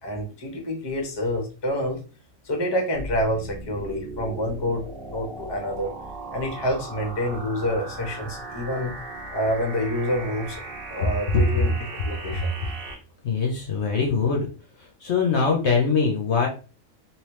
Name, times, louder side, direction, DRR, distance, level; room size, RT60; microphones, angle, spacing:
voice 1, 0.0-2.0 2.4-5.9 6.3-8.9 9.3-10.6 10.9-11.8 12.0-12.5, left 1 dB, 20° left, 2 dB, 0.8 m, -27 dB
sound 1, 2.9-12.9, right 3 dB, 45° right, 1.0 m, -37 dB
voice 2, 13.2-14.5 15.0-16.5, left 5 dB, 60° left, 0 dB, 0.9 m, -22 dB
3.2 x 3.0 x 3.1 m, 0.35 s
omnidirectional pair, 1.5 m